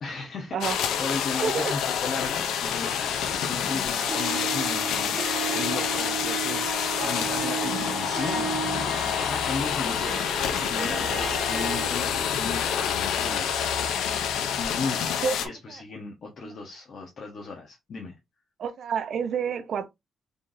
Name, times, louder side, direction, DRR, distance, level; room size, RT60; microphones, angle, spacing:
voice 1, 0.0-5.2 5.5-10.0 10.4-13.5 14.4-18.1, left 4 dB, 50° left, 1.0 m, -36 dB
sound 1, 0.6-15.5, left 8 dB, 85° left, 0.6 m, -27 dB
voice 2, 1.4-1.7 15.2-15.3 15.7-15.8 16.4-16.5 18.6-19.9, right 6 dB, 55° right, 0.6 m, -28 dB
Harp, 4.0-11.9, right 7 dB, 25° right, 1.4 m, -34 dB
3.9 x 3.3 x 2.6 m
cardioid pair, 130°, 0 cm